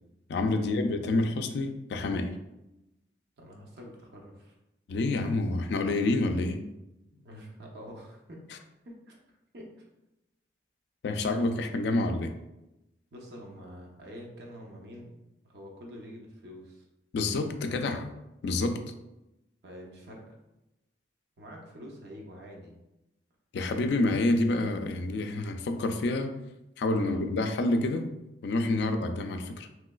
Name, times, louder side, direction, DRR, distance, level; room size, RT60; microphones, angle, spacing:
voice 1, 0.3-2.3 4.9-6.6 11.0-12.3 17.1-18.1 18.4-18.9 23.5-26.4 26.8-28.1 28.4-29.7, left 2 dB, 75° left, 6 dB, 0.3 m, -28 dB
voice 2, 3.4-4.5 7.1-8.4 8.8-9.2 9.5-9.7 13.1-15.1 15.4-16.8 19.6-20.3 21.4-22.8 27.0-27.2, equal, 70° right, -1 dB, 0.7 m, -46 dB
3.1 x 3.0 x 2.3 m, 0.94 s
head